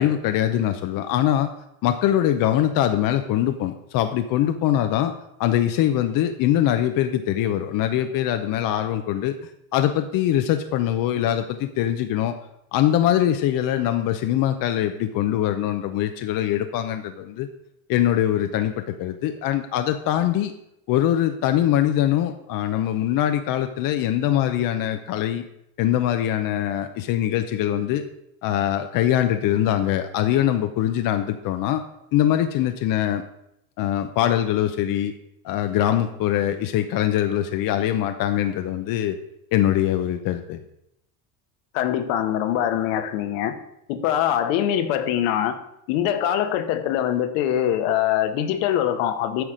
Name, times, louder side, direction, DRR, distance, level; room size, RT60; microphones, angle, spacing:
voice 1, 0.0-1.5 1.8-5.1 5.4-12.3 12.7-17.5 17.9-20.5 20.9-25.4 25.8-28.0 28.4-31.8 32.1-33.2 33.8-35.1 35.4-39.2 39.5-40.6, left 11 dB, 50° left, 8 dB, 0.7 m, -22 dB
voice 2, 41.7-43.5 43.9-45.6 45.9-49.4, left 10 dB, 70° left, 9 dB, 1.2 m, -23 dB
9.4 x 5.9 x 5.0 m, 0.81 s
supercardioid pair, 115°, 45 cm